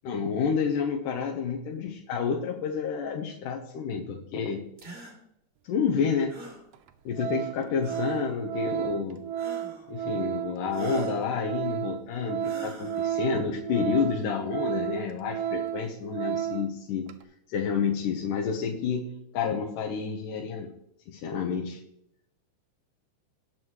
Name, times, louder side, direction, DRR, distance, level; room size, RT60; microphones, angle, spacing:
voice 1, 0.0-4.6 5.6-6.3 7.1-9.2 9.9-17.1 17.5-20.7 21.1-21.8, left 6 dB, 90° left, 0 dB, 2.6 m, -29 dB
sound 1, 4.8-5.2 6.3-6.6 7.8-8.3 9.4-9.9 10.7-11.2 12.4-13.1, right 1 dB, 20° right, 2.1 m, -43 dB
Organ, 6.1-6.2 6.7-6.9 7.2-16.7 17.1-17.2, right 10 dB, 75° right, 1.5 m, -32 dB
18.5 x 6.3 x 3.1 m, 0.76 s
omnidirectional pair, 3.7 m